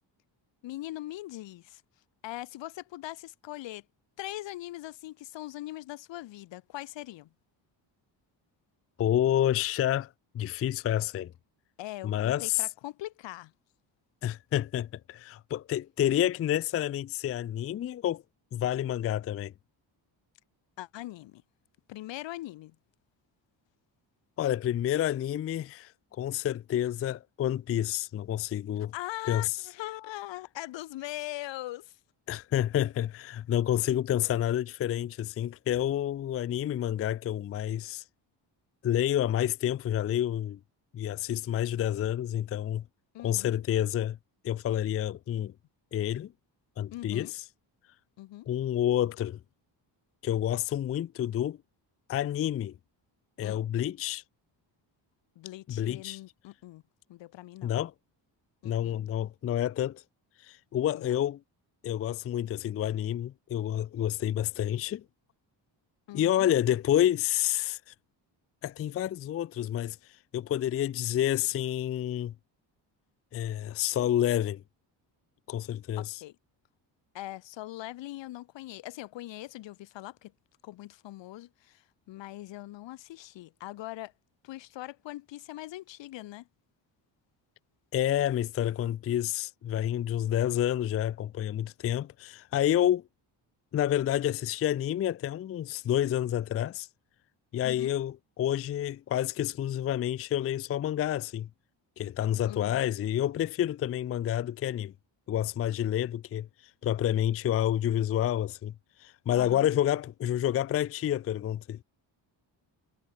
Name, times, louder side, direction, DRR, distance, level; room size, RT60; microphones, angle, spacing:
voice 1, 0.6-1.8 2.2-3.8 4.2-7.3 11.8-13.5 20.8-21.4 21.9-22.8 28.9-32.0 43.1-43.6 46.9-47.3 48.2-48.5 53.4-53.6 55.4-56.8 57.1-57.8 58.6-59.0 60.9-61.2 66.1-66.5 76.0-76.3 77.1-80.3 80.6-84.1 84.4-86.5 97.6-97.9 102.5-102.8 109.3-109.7, left 16 dB, 80° left, 1.0 m, -41 dB
voice 2, 9.0-10.1 10.3-11.3 12.0-12.6 14.2-18.2 18.5-19.5 24.4-25.9 26.2-28.9 29.3-29.5 32.3-38.0 38.8-40.6 40.9-42.8 43.2-44.2 44.4-45.5 45.9-46.3 46.8-47.3 48.5-49.4 50.2-51.6 52.1-52.7 53.4-54.2 55.7-56.2 57.6-57.9 58.6-60.0 60.5-61.4 61.8-65.0 66.1-67.8 68.6-70.0 70.3-72.3 73.3-74.6 75.5-76.2 87.9-93.0 93.7-96.9 97.5-101.5 102.0-104.9 105.3-106.5 106.8-108.7 109.0-111.8, left 11 dB, 35° left, 0.4 m, -29 dB
cardioid pair, 150°, 44 cm